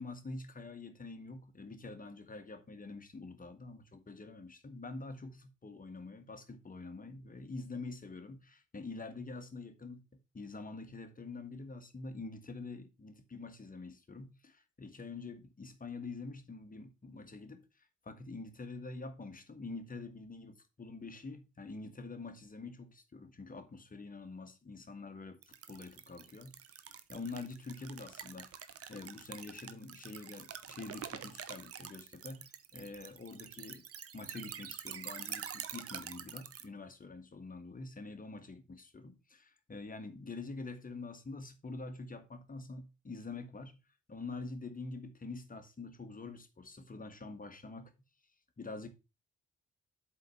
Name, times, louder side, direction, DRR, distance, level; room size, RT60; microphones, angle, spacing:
voice 1, 0.0-10.0 10.3-17.6 18.0-26.6 27.1-33.9 34.1-43.8 44.1-47.9 48.6-48.9, left 3 dB, 25° left, 1.7 m, -46 dB
sound 1, 25.4-36.7, right 9 dB, 40° right, 0.9 m, -46 dB
8.0 x 3.9 x 5.9 m
figure-of-eight pair, 40°, 34 cm